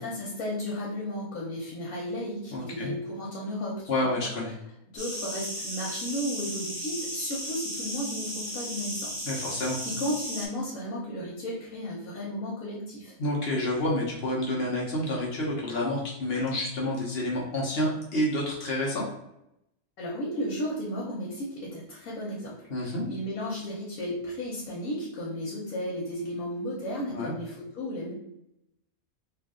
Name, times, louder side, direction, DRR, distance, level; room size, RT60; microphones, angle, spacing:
voice 1, 0.0-4.1 4.9-9.3 9.8-13.1 20.0-28.1, equal, 80° left, -5 dB, 1.3 m, -34 dB
voice 2, 2.5-2.9 3.9-4.5 9.2-9.8 13.2-19.0 22.7-23.1 27.1-27.4, left 1 dB, 50° left, -3 dB, 0.9 m, -29 dB
sound 1, 5.0-10.5, equal, 25° right, 1.2 m, -35 dB
3.2 x 2.5 x 3.6 m, 0.83 s
omnidirectional pair, 1.5 m